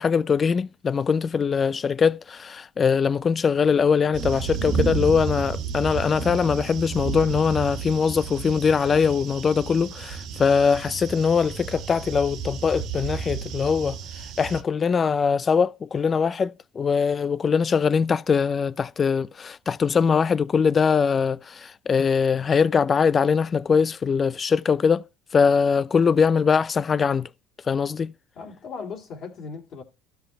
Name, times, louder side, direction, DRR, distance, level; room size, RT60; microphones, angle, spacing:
voice 1, 0.0-14.0 14.4-25.0 25.3-27.3 27.7-28.1, left 6 dB, 35° left, 0.5 m, -22 dB
sound 1, 4.1-14.6, right 6 dB, 60° right, 1.6 m, -32 dB
voice 2, 28.4-29.8, left 5 dB, 50° left, 2.7 m, -37 dB
12.5 x 5.8 x 3.1 m
supercardioid pair, 85°, 0 cm